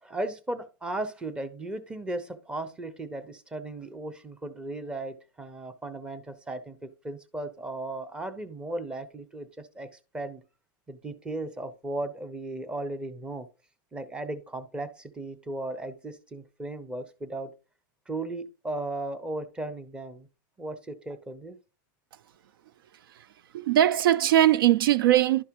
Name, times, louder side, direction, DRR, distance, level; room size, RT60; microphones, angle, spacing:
voice 1, 0.0-9.9 10.1-10.4 10.9-13.5 13.9-17.5 18.1-20.3 20.6-21.6, right 2 dB, 10° right, 0.7 m, -36 dB
voice 2, 23.5-25.4, right 12 dB, 85° right, 0.4 m, -20 dB
11.5 x 4.8 x 3.0 m
supercardioid pair, 145°, 12 cm